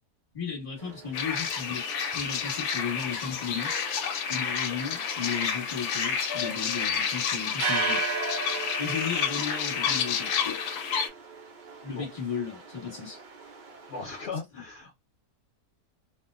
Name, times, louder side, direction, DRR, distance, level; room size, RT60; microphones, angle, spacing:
voice 1, 0.3-1.9 2.1-3.7 4.3-8.0 8.8-10.6 11.8-13.2, left 6 dB, 25° left, 1.1 m, -35 dB
sound 1, 0.8-14.2, right 5 dB, 75° right, 0.4 m, -39 dB
sound 2, 1.1-11.1, left 7 dB, 80° left, 1.1 m, -30 dB
voice 2, 13.9-15.0, left 4 dB, 55° left, 0.7 m, -37 dB
2.6 x 2.2 x 2.3 m
omnidirectional pair, 1.6 m